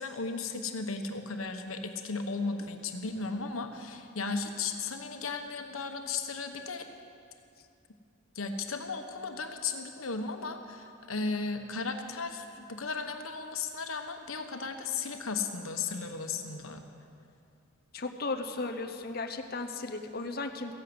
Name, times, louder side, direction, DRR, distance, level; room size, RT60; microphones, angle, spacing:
voice 1, 0.0-6.9 8.3-16.8, left 4 dB, 85° left, 6 dB, 1.3 m, -35 dB
voice 2, 17.9-20.7, left 3 dB, 50° left, 5 dB, 0.9 m, -35 dB
15.0 x 11.0 x 7.9 m, 2.5 s
head